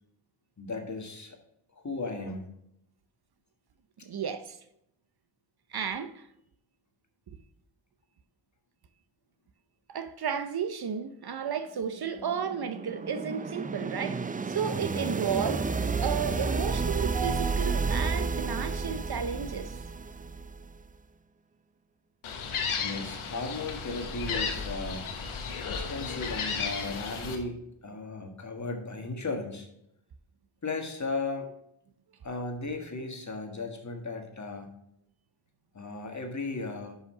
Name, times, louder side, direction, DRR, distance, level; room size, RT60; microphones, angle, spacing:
voice 1, 0.6-1.4 1.7-2.5 22.8-25.1 25.7-29.7 30.6-31.5 32.2-34.7 35.7-37.0, left 3 dB, 35° left, 1.6 m, -36 dB
voice 2, 4.0-4.6 5.7-6.3 9.9-15.7 16.0-19.8, right 7 dB, 50° right, 0.7 m, -33 dB
sound 1, 11.9-20.8, right 4 dB, 20° right, 0.4 m, -31 dB
Gull seagull, 22.2-27.4, left 5 dB, 85° left, 1.2 m, -34 dB
5.7 x 5.7 x 5.5 m
cardioid pair, 45°, 48 cm